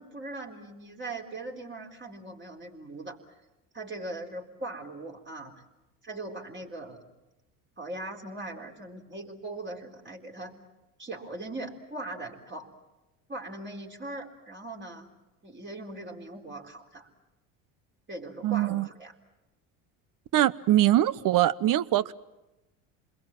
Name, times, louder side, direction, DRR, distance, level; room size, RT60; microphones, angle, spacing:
voice 1, 0.0-3.2 3.7-5.6 6.0-7.1 7.8-10.5 11.0-12.7 13.3-15.1 15.4-17.1 18.1-19.1, right 2 dB, 25° right, 0 dB, 4.1 m, -40 dB
voice 2, 18.4-18.9 20.3-22.1, right 13 dB, 50° right, 18 dB, 0.9 m, -23 dB
28.0 x 21.5 x 7.5 m, 1.0 s
supercardioid pair, 80°, 42 cm